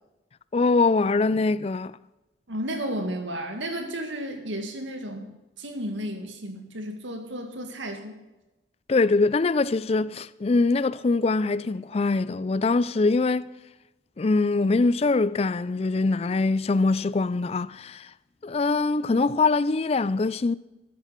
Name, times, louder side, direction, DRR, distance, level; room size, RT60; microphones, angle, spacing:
voice 1, 0.5-2.0 8.9-13.5 14.2-18.1 18.4-20.5, left 3 dB, 35° left, 0.4 m, -23 dB
voice 2, 2.5-8.2, right 1 dB, 90° right, 2.1 m, -33 dB
13.5 x 10.5 x 5.8 m
head